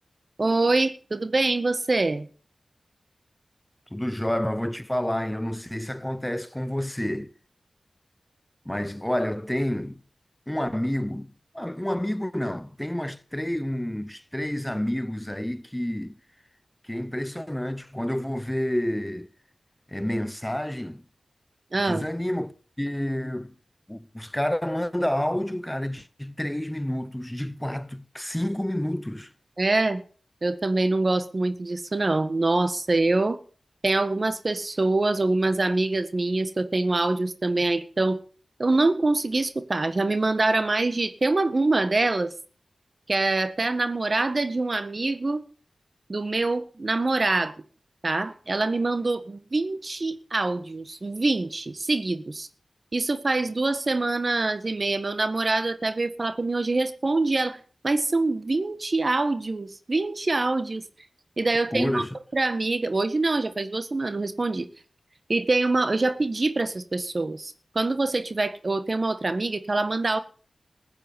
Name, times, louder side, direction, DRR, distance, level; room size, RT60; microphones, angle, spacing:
voice 1, 0.4-2.3 21.7-22.1 29.6-30.0 30.4-33.4 33.8-38.2 38.6-42.3 43.1-45.4 46.1-47.5 48.0-52.5 52.9-60.8 61.4-62.0 62.3-64.7 65.3-70.2, right 2 dB, 50° right, 1.6 m, -25 dB
voice 2, 3.9-7.3 8.7-10.0 10.5-16.1 16.8-19.3 19.9-21.0 21.9-23.5 23.9-29.3 61.7-62.1, left 1 dB, 10° left, 0.8 m, -29 dB
15.0 x 9.0 x 6.9 m
cardioid pair, 40°, 0 cm